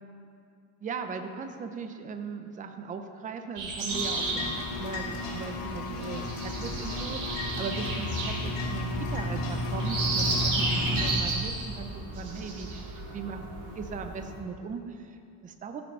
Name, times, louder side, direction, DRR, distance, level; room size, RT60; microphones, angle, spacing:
voice 1, 0.8-15.8, right 5 dB, 20° right, 6 dB, 0.6 m, -38 dB
sound 1, 3.6-14.4, right 2 dB, 55° right, 2.8 m, -34 dB
sound 2, 3.9-11.1, left 2 dB, 85° left, 2.6 m, -33 dB
14.5 x 7.0 x 5.5 m, 2.4 s
cardioid pair, 155°, 37 cm